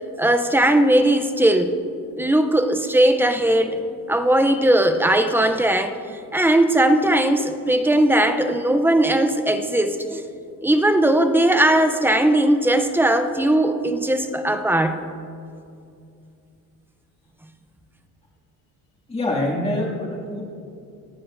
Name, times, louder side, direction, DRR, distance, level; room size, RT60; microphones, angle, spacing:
voice 1, 0.2-1.7 2.2-3.8 4.1-6.0 6.3-10.2 10.6-15.1, right 1 dB, 5° right, 8 dB, 0.4 m, -18 dB
voice 2, 19.1-20.4, left 1 dB, 15° left, -3 dB, 2.1 m, -25 dB
27.0 x 9.2 x 2.5 m, 2.5 s
cardioid pair, 160°, 36 cm